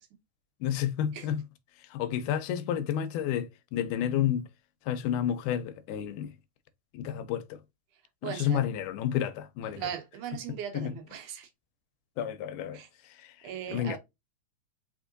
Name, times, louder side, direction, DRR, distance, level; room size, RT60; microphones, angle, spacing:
voice 1, 0.6-1.4 1.8-4.5 4.9-6.3 6.9-7.6 8.2-9.9 10.7-10.9 12.2-14.0, left 10 dB, 90° left, 2.2 m, -31 dB
voice 2, 8.2-8.7 9.8-11.5 12.7-12.9 13.4-14.0, right 9 dB, 80° right, 2.4 m, -38 dB
4.8 x 3.6 x 2.5 m
omnidirectional pair, 3.5 m